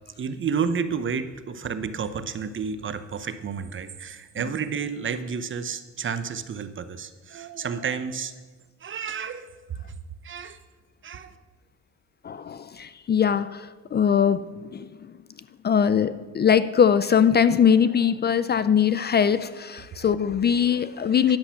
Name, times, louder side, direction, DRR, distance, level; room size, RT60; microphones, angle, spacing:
voice 1, 0.2-8.3 8.8-9.5 10.2-10.6 11.0-11.3, right 6 dB, 40° right, 11 dB, 0.8 m, -31 dB
voice 2, 12.2-14.9 15.6-21.4, left 7 dB, 35° left, 14 dB, 0.4 m, -21 dB
10.5 x 7.2 x 5.8 m, 1.3 s
cardioid pair, 90°, 30 cm